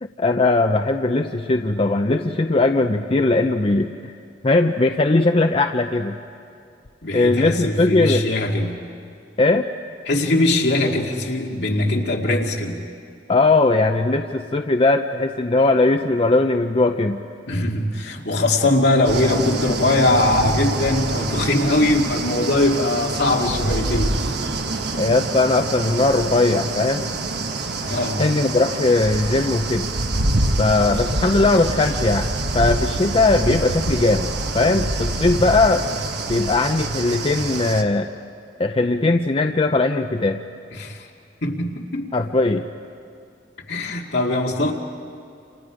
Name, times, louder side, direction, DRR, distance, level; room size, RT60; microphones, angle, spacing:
voice 1, 0.0-4.1 4.4-6.2 7.1-8.2 9.4-9.7 13.3-17.2 24.9-27.1 28.2-29.9 30.6-34.3 34.5-35.8 36.3-38.1 38.6-40.4 42.1-42.7, left 2 dB, 30° left, 5 dB, 0.6 m, -19 dB
voice 2, 7.0-8.8 10.1-12.8 17.5-24.2 27.8-28.2 40.7-41.1 41.4-42.1 43.7-44.7, left 2 dB, 65° left, 0 dB, 2.3 m, -21 dB
sound 1, 19.0-37.8, right 2 dB, 65° right, 1.3 m, -26 dB
29.0 x 27.5 x 5.0 m, 2.4 s
head